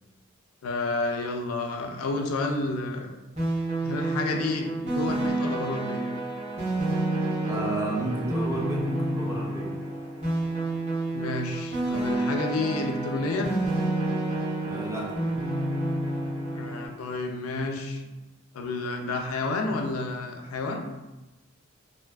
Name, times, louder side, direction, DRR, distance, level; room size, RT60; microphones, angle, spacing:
voice 1, 0.6-3.1 3.8-6.0 11.1-13.6 16.5-18.0 18.5-20.9, left 2 dB, 85° left, 3 dB, 0.4 m, -30 dB
sound 1, 3.4-16.9, right 2 dB, 30° right, 0.8 m, -29 dB
voice 2, 7.5-9.8 14.7-15.2, right 1 dB, 15° right, -3 dB, 0.4 m, -32 dB
2.6 x 2.4 x 2.3 m, 1.0 s
head